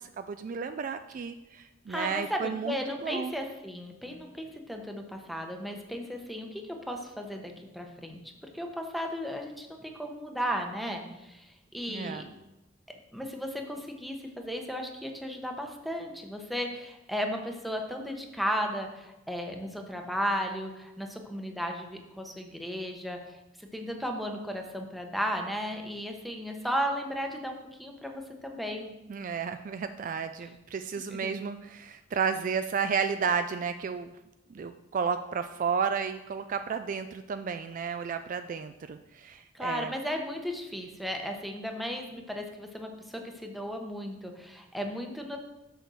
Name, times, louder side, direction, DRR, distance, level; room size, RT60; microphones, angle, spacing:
voice 1, 0.0-2.8 3.0-3.3 11.9-12.3 29.1-34.1 34.5-39.9, right 6 dB, 45° right, 9 dB, 0.3 m, -32 dB
voice 2, 1.9-8.2 8.5-12.2 13.1-28.9 30.4-30.5 31.1-31.3 39.5-45.4, equal, ahead, 2 dB, 0.9 m, -35 dB
6.6 x 6.2 x 6.2 m, 0.97 s
head